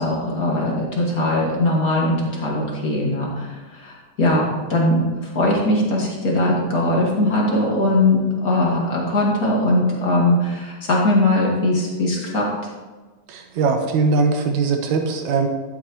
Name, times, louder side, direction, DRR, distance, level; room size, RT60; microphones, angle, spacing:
voice 1, 0.0-12.5, left 1 dB, 35° left, -3 dB, 1.8 m, -20 dB
voice 2, 13.3-15.5, right 4 dB, 70° right, 4 dB, 2.4 m, -20 dB
12.5 x 9.0 x 3.1 m, 1.3 s
omnidirectional pair, 3.6 m